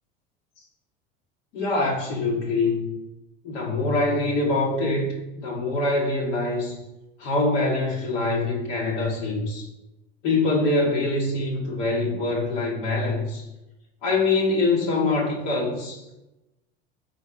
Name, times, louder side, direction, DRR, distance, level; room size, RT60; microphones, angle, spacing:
voice 1, 1.5-2.9 3.4-6.8 7.2-9.6 10.2-13.4 14.0-16.2, left 2 dB, 65° left, -3 dB, 1.3 m, -24 dB
3.9 x 2.8 x 4.4 m, 0.96 s
hypercardioid pair, 90°, 30 cm